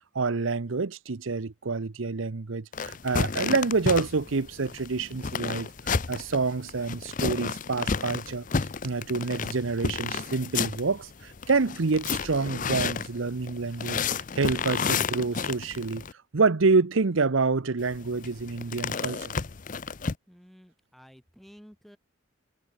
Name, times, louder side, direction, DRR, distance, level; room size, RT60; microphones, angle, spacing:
voice 1, 0.1-5.7 6.1-16.0 16.3-19.3, right 4 dB, 80° right, 0.8 m, -27 dB
sound 1, 2.7-16.1 17.8-20.1, left 5 dB, 40° left, 0.6 m, -32 dB
voice 2, 20.3-22.0, equal, ahead, 4.5 m, -52 dB
head